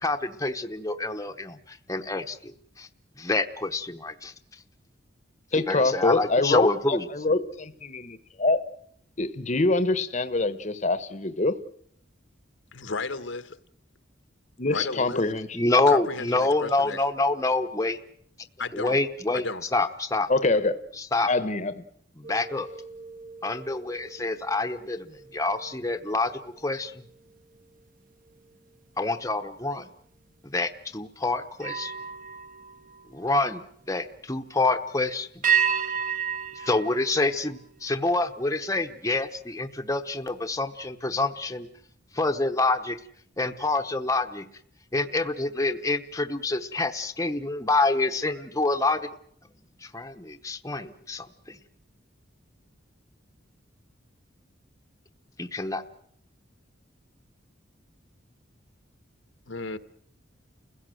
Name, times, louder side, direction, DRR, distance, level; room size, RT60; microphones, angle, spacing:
voice 1, 0.0-2.5 2.8-2.9 3.2-4.3 5.5-7.1 15.5-18.0 18.7-19.4 19.7-20.3 21.0-21.3 22.2-22.7 23.4-26.3 26.6-27.0 29.0-29.9 30.4-31.9 33.1-33.6 33.9-35.3 36.6-41.7 42.1-43.0 43.4-44.4 44.9-49.0 49.8-51.6 55.4-55.8, left 2 dB, 15° left, 6 dB, 0.9 m, -27 dB
voice 2, 5.5-8.6 9.2-11.5 14.6-15.5 20.3-20.8 21.3-21.8, left 2 dB, 40° left, 13 dB, 1.0 m, -25 dB
voice 3, 12.7-13.6 14.7-15.2 15.9-17.0 18.6-19.0 19.3-19.6 59.5-59.8, left 3 dB, 75° left, 11 dB, 1.2 m, -33 dB
sound 1, 22.2-27.8 28.3-28.6 31.5-33.7 35.4-38.0, right 8 dB, 45° right, 1.3 m, -33 dB
29.5 x 16.5 x 7.7 m, 0.69 s
head